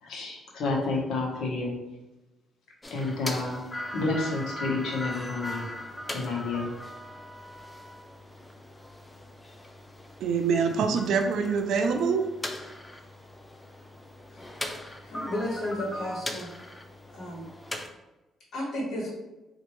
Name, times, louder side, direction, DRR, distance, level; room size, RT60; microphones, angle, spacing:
voice 1, 0.0-1.7 2.9-3.7 3.9-5.7 6.1-6.7, left 3 dB, 80° left, -1 dB, 1.0 m, -30 dB
sound 1, 2.8-17.9, left 1 dB, 15° left, 0.5 m, -40 dB
voice 2, 10.2-12.2, right 5 dB, 75° right, 5 dB, 0.4 m, -25 dB
voice 3, 15.0-16.5 17.1-17.5 18.5-19.1, left 1 dB, 65° left, -4 dB, 1.4 m, -32 dB
4.2 x 2.6 x 3.1 m, 1.0 s
cardioid pair, 90°, 0 cm